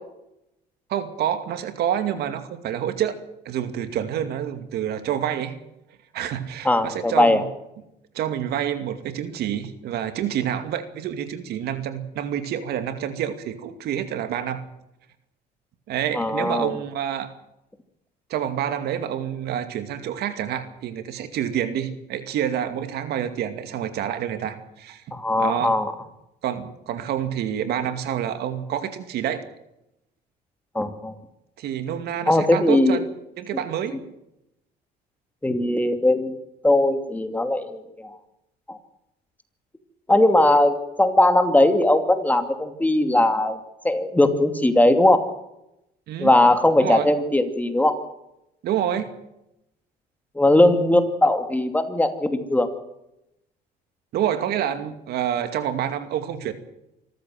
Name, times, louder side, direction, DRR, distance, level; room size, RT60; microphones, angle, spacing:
voice 1, 0.9-3.2 3.4-5.5 6.1-7.4 8.1-14.6 15.9-17.3 18.3-25.0 25.4-25.7 26.4-29.4 31.6-33.1 33.4-34.0 46.1-46.3 46.8-47.1 48.6-49.1 54.1-56.5, right 10 dB, 75° right, 9 dB, 2.4 m, -28 dB
voice 2, 6.6-7.4 16.1-16.7 25.1-25.9 30.7-31.1 32.3-33.0 35.4-36.3 36.6-38.2 38.7-38.8 40.1-43.6 43.8-45.3 46.2-47.9 50.3-52.7, left 1 dB, 10° left, 7 dB, 2.6 m, -19 dB
25.5 x 14.5 x 7.7 m, 0.86 s
cardioid pair, 110°, 17 cm